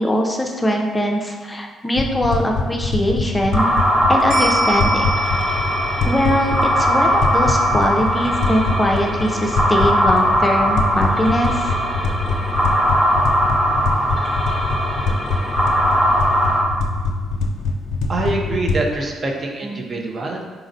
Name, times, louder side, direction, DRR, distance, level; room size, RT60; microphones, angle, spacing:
voice 1, 0.0-3.7 4.1-5.1 6.0-11.8 19.6-19.8, equal, 15° left, 0 dB, 0.5 m, -21 dB
sound 1, 2.0-18.8, left 3 dB, 85° left, 0.4 m, -24 dB
sound 2, 3.5-16.6, equal, 15° right, 1.0 m, -20 dB
sound 3, 4.3-12.9 13.2-13.3, equal, 90° right, 1.1 m, -31 dB
voice 2, 18.1-20.4, right 2 dB, 45° right, 1 dB, 0.6 m, -24 dB
4.0 x 4.0 x 2.6 m, 1.4 s
cardioid pair, 90°, 0 cm